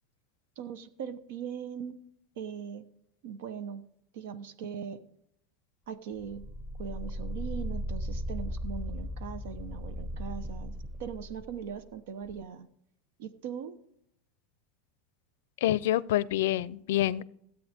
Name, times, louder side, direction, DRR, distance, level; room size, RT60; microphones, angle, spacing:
voice 1, 0.6-2.0 2.4-2.8 3.2-3.8 4.1-5.0 5.9-6.4 6.8-10.7 11.0-12.7 13.2-13.7, right 7 dB, 75° right, 13 dB, 0.9 m, -40 dB
sound 1, 6.2-11.8 12.2-12.4, equal, 5° right, 0.8 m, -37 dB
voice 2, 15.6-17.2, left 14 dB, 80° left, 19 dB, 0.5 m, -27 dB
16.0 x 8.6 x 3.6 m, 0.75 s
supercardioid pair, 170°, 0 cm